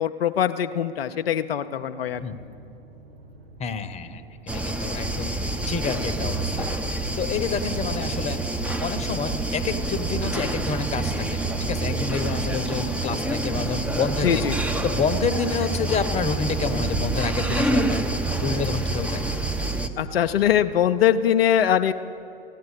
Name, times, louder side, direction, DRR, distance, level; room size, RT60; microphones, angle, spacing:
voice 1, 0.0-2.2 14.2-14.6 20.0-21.9, left 10 dB, 80° left, 8 dB, 0.5 m, -22 dB
sound 1, 2.0-21.3, right 1 dB, 75° right, 1.2 m, -45 dB
voice 2, 3.6-4.2 4.5-6.7 7.1-8.4 8.7-14.4 14.8-19.2, left 5 dB, 20° left, 10 dB, 1.0 m, -28 dB
sound 2, 4.5-19.9, right 2 dB, 5° right, 0.8 m, -27 dB
15.5 x 9.4 x 8.3 m, 2.7 s
figure-of-eight pair, 90°, 29 cm